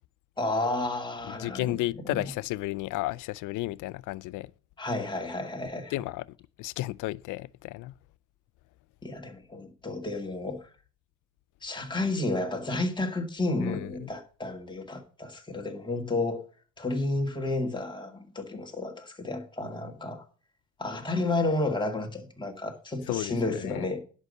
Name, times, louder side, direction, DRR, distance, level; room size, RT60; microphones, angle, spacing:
voice 1, 0.4-1.8 2.0-2.3 4.8-5.9 9.0-10.6 11.6-16.4 16.8-20.2 20.8-24.0, left 2 dB, 15° left, 2.1 m, -31 dB
voice 2, 1.3-4.5 5.9-6.3 6.6-7.9 13.6-14.1 23.1-23.9, left 18 dB, 85° left, 0.5 m, -33 dB
11.0 x 5.7 x 6.5 m
cardioid pair, 90°, 30 cm